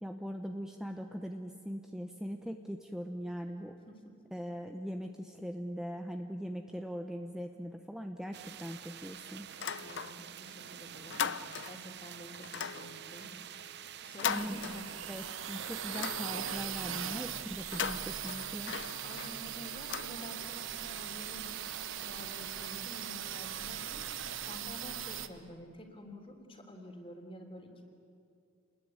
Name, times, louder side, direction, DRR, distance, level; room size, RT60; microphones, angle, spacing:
voice 1, 0.0-3.7 4.3-9.5 14.3-14.6 15.1-18.7, equal, 5° right, 4 dB, 0.9 m, -41 dB
sound 1, 8.3-24.6, right 9 dB, 55° right, 0.8 m, -47 dB
sound 2, 9.5-10.5 10.8-11.9 12.4-15.3 15.6-16.8 17.6-20.7, left 7 dB, 65° left, 0.8 m, -39 dB
voice 2, 10.4-11.2 11.7-13.3 14.0-14.9 19.0-27.9, left 1 dB, 30° left, 4 dB, 3.4 m, -49 dB
sound 3, 14.3-25.3, right 9 dB, 80° right, 1.2 m, -40 dB
28.5 x 21.0 x 9.7 m, 2.6 s
head